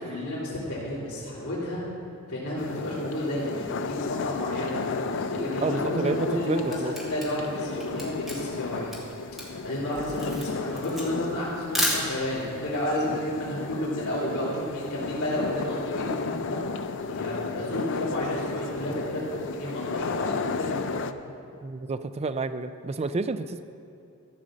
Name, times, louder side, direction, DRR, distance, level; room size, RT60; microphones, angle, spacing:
voice 1, 0.0-1.8 2.3-8.9 9.3-16.6 17.1-19.2 19.5-21.0, left 1 dB, 80° left, -11 dB, 2.9 m, -31 dB
sound 1, 2.6-21.1, left 4 dB, 55° left, 0.4 m, -34 dB
voice 2, 5.6-6.9 21.6-23.6, right 3 dB, 30° right, 11 dB, 0.3 m, -29 dB
Camera, 6.3-12.5, equal, ahead, 1.9 m, -32 dB
14.0 x 5.2 x 7.4 m, 2.6 s
head